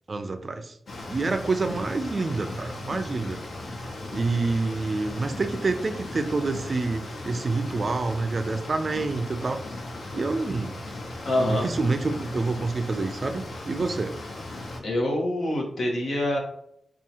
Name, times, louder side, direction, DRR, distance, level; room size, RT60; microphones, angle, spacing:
voice 1, 0.1-0.7 1.1-3.4 4.1-9.6 10.1-10.8 11.4-14.1, right 3 dB, 40° right, 8 dB, 0.3 m, -27 dB
sound 1, 0.9-14.8, left 2 dB, 60° left, 0.6 m, -37 dB
voice 2, 11.2-11.7 14.8-16.4, left 1 dB, 80° left, 0 dB, 1.0 m, -25 dB
4.6 x 2.4 x 2.8 m, 0.70 s
wide cardioid pair, 150°, 0 cm